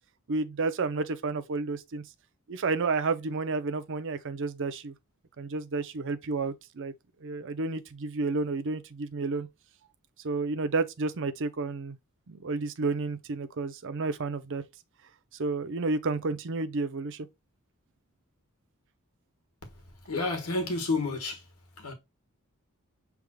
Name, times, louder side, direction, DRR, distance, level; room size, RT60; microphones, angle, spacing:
voice 1, 0.3-2.0 2.5-4.9 5.4-6.9 7.2-9.5 10.2-12.0 12.3-14.6 15.4-17.3, right 3 dB, 60° right, 0.6 m, -31 dB
voice 2, 20.1-21.4 21.8-21.9, left 3 dB, 85° left, 1.5 m, -30 dB
6.2 x 3.5 x 2.2 m
head